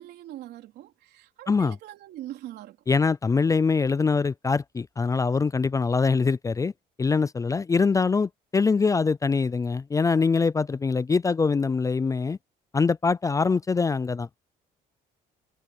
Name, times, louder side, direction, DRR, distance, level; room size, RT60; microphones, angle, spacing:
voice 1, 0.0-2.8, right 14 dB, 75° right, 3.7 m, -42 dB
voice 2, 2.9-6.7 7.0-12.4 12.7-14.4, left 4 dB, 20° left, 0.4 m, -23 dB
cardioid pair, 110°, 17 cm